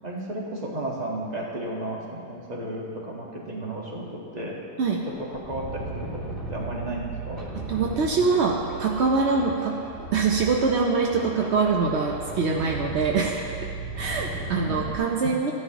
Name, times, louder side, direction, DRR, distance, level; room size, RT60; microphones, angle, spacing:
voice 1, 0.0-4.6 5.2-6.2 6.5-7.4 14.5-15.1, right 1 dB, 25° right, -3 dB, 1.4 m, -33 dB
sound 1, 5.2-15.0, right 2 dB, 15° left, 2.2 m, -36 dB
voice 2, 7.5-9.8 10.1-13.5 14.0-15.5, right 4 dB, 65° right, 0 dB, 0.6 m, -24 dB
15.0 x 10.5 x 2.9 m, 2.4 s
omnidirectional pair, 1.9 m